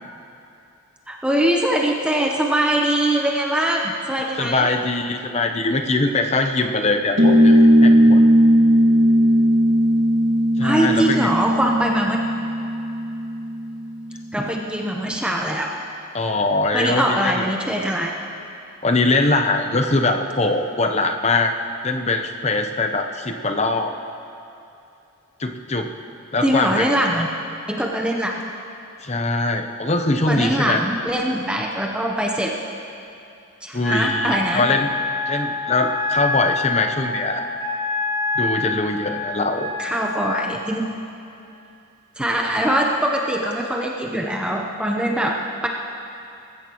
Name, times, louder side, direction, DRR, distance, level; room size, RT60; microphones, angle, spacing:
voice 1, 1.1-4.7 10.6-12.2 14.3-15.7 16.7-18.1 26.4-27.3 27.7-28.4 30.3-32.6 33.6-34.6 39.8-41.0 42.2-45.7, right 1 dB, 5° right, 0 dB, 0.8 m, -22 dB
voice 2, 4.4-8.2 10.6-11.3 16.1-17.5 18.8-21.5 21.8-23.9 25.4-25.9 26.3-26.9 29.0-30.8 33.7-34.9 35.3-37.4 38.4-39.7, left 2 dB, 30° left, 5 dB, 0.7 m, -22 dB
sound 1, 7.2-14.1, equal, 55° right, 1.6 m, -17 dB
Wind instrument woodwind instrument, 33.8-40.4, left 3 dB, 55° left, 2.4 m, -26 dB
20.5 x 15.0 x 3.0 m, 2.7 s
head